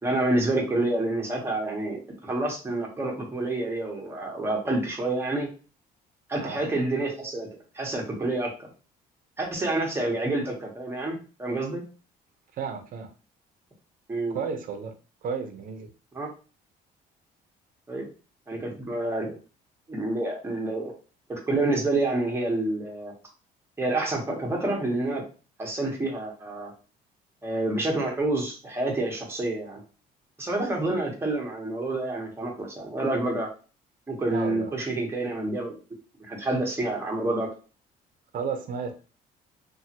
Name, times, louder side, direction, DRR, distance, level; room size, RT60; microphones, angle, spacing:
voice 1, 0.0-5.5 6.3-7.5 7.7-8.5 9.4-11.8 14.1-14.4 16.1-16.3 17.9-18.1 18.5-19.3 19.9-20.9 21.3-23.1 23.8-25.2 25.6-26.7 27.4-29.8 30.4-33.5 34.1-35.8 36.2-37.5, right 2 dB, 15° right, -1 dB, 1.1 m, -28 dB
voice 2, 12.6-13.1 14.3-14.9 15.2-15.9 34.3-34.7 38.3-38.9, right 6 dB, 55° right, 6 dB, 0.7 m, -32 dB
2.6 x 2.6 x 2.8 m, 0.35 s
cardioid pair, 110°, 17 cm